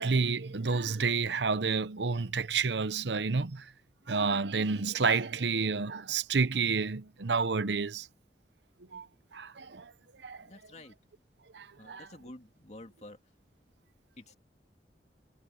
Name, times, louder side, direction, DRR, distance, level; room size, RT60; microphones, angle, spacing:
voice 1, 0.0-3.7 4.1-8.1 8.9-9.1 9.3-9.9 10.2-10.5 11.5-12.1, right 4 dB, 80° right, 0.8 m, -30 dB
voice 2, 10.4-11.0 11.8-13.2 14.2-14.3, left 1 dB, 40° left, 2.5 m, -49 dB
head